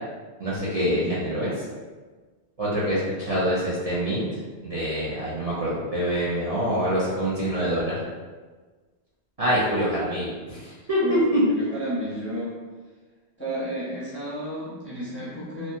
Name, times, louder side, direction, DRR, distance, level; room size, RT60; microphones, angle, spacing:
voice 1, 0.4-1.5 2.6-4.3 4.6-8.0 9.4-11.4, equal, 45° right, -9 dB, 0.5 m, -25 dB
voice 2, 11.0-12.5 13.4-15.8, equal, 15° left, -9 dB, 0.5 m, -32 dB
2.8 x 2.1 x 2.5 m, 1.4 s
omnidirectional pair, 1.1 m